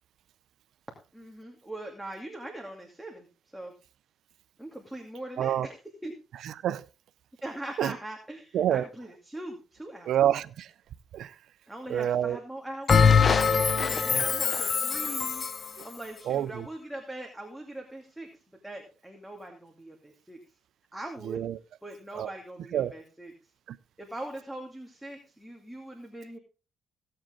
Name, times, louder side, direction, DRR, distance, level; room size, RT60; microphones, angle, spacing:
voice 1, 1.1-3.3 3.5-3.7 4.6-5.7 6.0-6.1 7.4-10.1 11.7-20.4 20.9-21.4 21.8-23.5 24.0-26.4, right 1 dB, 5° right, 2.5 m, -41 dB
voice 2, 6.4-6.8 7.8-7.9 8.5-8.9 10.1-10.7 11.1-11.4 11.9-12.4 14.1-14.3 15.8-15.9 16.2-16.7 21.2-21.6 22.2-22.3 22.7-22.9 23.7-23.8, right 10 dB, 75° right, 0.5 m, -28 dB
Bell, 12.9-15.7, left 6 dB, 40° left, 0.8 m, -23 dB
16.5 x 7.6 x 3.8 m
cardioid pair, 90°, 0 cm